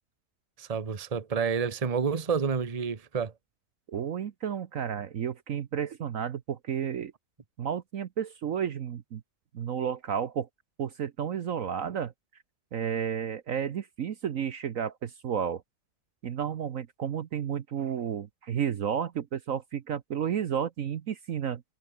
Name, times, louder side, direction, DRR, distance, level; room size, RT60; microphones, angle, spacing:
voice 1, 0.6-3.3, right 6 dB, 25° right, 1.1 m, -29 dB
voice 2, 3.9-7.1 7.6-9.2 9.5-10.5 10.8-12.1 12.7-15.6 16.2-21.6, right 8 dB, 60° right, 1.2 m, -32 dB
omnidirectional pair, 1.7 m